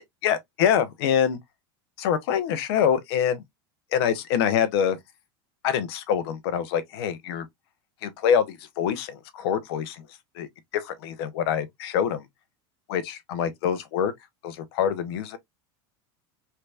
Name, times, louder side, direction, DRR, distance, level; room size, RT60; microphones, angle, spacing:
voice 1, 0.2-1.4 2.0-3.4 3.9-5.0 5.6-7.5 8.0-10.0 10.4-10.5 10.7-12.2 12.9-14.1 14.4-15.4, left 8 dB, 70° left, 0.8 m, -25 dB
3.3 x 2.9 x 2.3 m
supercardioid pair, 135°, 14 cm